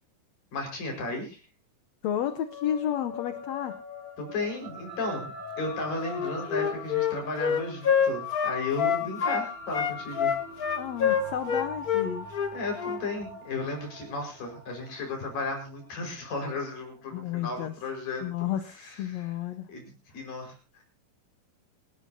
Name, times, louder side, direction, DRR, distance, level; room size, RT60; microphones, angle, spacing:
voice 1, 0.5-1.4 4.2-5.3 5.6-10.4 12.5-18.2 18.8-19.3 19.7-20.8, left 3 dB, 90° left, 2 dB, 6.9 m, -34 dB
voice 2, 2.0-3.8 9.0-9.1 10.7-12.3 17.1-17.7 18.2-19.7, left 10 dB, 70° left, 10 dB, 1.8 m, -32 dB
sound 1, 2.3-17.0, left 3 dB, 40° right, 7.5 m, -42 dB
Wind instrument woodwind instrument, 6.0-9.5 9.7-13.0, left 7 dB, 50° left, 1.1 m, -26 dB
26.0 x 13.0 x 2.8 m, 0.34 s
omnidirectional pair, 3.8 m